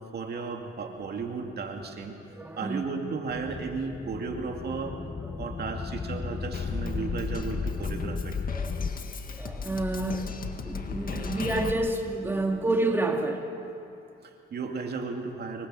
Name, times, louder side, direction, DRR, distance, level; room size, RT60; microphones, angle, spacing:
voice 1, 0.0-5.0 5.4-8.4 14.2-15.7, right 4 dB, 55° right, 3 dB, 2.4 m, -35 dB
voice 2, 2.4-3.0 8.5-8.8 9.3-10.3 10.6-13.5, right 2 dB, 10° right, 3 dB, 2.0 m, -29 dB
sound 1, 3.3-8.9, left 4 dB, 30° left, 0.9 m, -35 dB
Drum kit, 6.5-11.7, left 5 dB, 45° left, 1.9 m, -35 dB
26.0 x 23.5 x 6.4 m, 2.6 s
cardioid pair, 90°, 20 cm